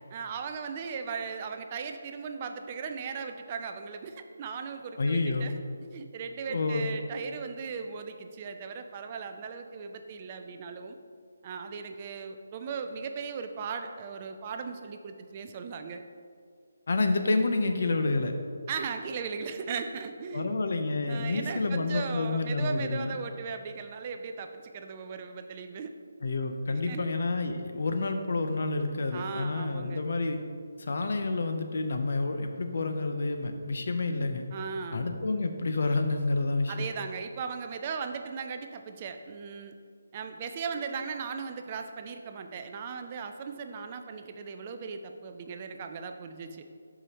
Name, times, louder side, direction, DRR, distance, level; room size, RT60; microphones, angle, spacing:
voice 1, 0.1-5.5 5.9-11.0 11.4-16.0 18.7-20.5 21.1-25.9 26.7-27.1 29.1-30.0 34.5-35.0 36.7-39.7 40.1-46.7, right 5 dB, 20° right, 6 dB, 0.3 m, -37 dB
voice 2, 5.0-5.5 6.5-6.9 16.9-18.3 20.3-23.2 26.2-30.4 30.8-34.4 34.9-36.7, left 3 dB, 50° left, 6 dB, 0.6 m, -29 dB
12.0 x 4.9 x 2.9 m, 2.2 s
hypercardioid pair, 175°, 0 cm